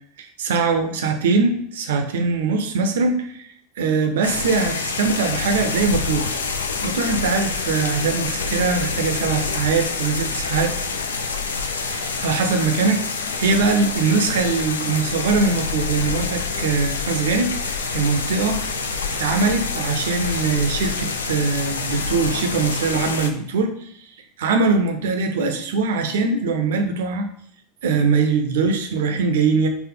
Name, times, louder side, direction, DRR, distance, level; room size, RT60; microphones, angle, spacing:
voice 1, 0.2-3.5 3.8-6.3 6.8-10.7 11.9-13.0 13.4-18.6 19.2-23.9 24.4-27.3 27.8-29.7, right 4 dB, 70° right, 6 dB, 0.5 m, -22 dB
sound 1, 4.2-23.3, left 4 dB, 85° left, 0.3 m, -27 dB
3.9 x 2.0 x 3.7 m, 0.68 s
hypercardioid pair, 80°, 0 cm